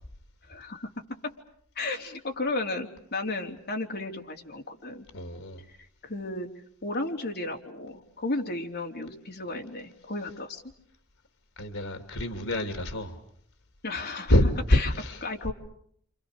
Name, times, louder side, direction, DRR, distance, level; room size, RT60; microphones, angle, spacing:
voice 1, 0.5-0.9 1.2-1.3 1.8-5.1 6.0-6.5 6.8-10.6 13.8-14.4 14.7-14.9 15.2-15.5, left 2 dB, 50° left, 3 dB, 3.6 m, -33 dB
voice 2, 5.1-5.6 11.6-13.2 14.3-15.2, left 1 dB, 80° left, 8 dB, 2.9 m, -26 dB
28.5 x 28.0 x 6.7 m, 0.66 s
head